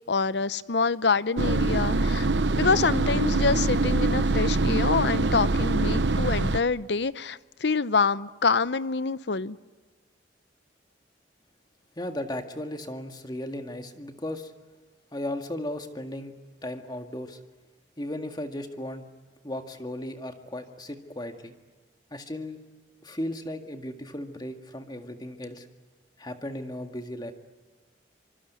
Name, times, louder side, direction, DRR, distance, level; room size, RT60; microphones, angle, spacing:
voice 1, 0.1-2.3 2.6-9.6, left 4 dB, 65° left, 17 dB, 0.8 m, -26 dB
sound 1, 1.4-6.6, right 2 dB, 75° right, 0.9 m, -24 dB
voice 2, 12.0-14.5 15.1-16.3 16.6-17.4 18.0-19.1 19.4-21.5 22.1-22.6 23.0-25.7 26.2-27.3, left 1 dB, 25° left, 6 dB, 2.0 m, -35 dB
25.5 x 24.5 x 9.5 m, 1.4 s
head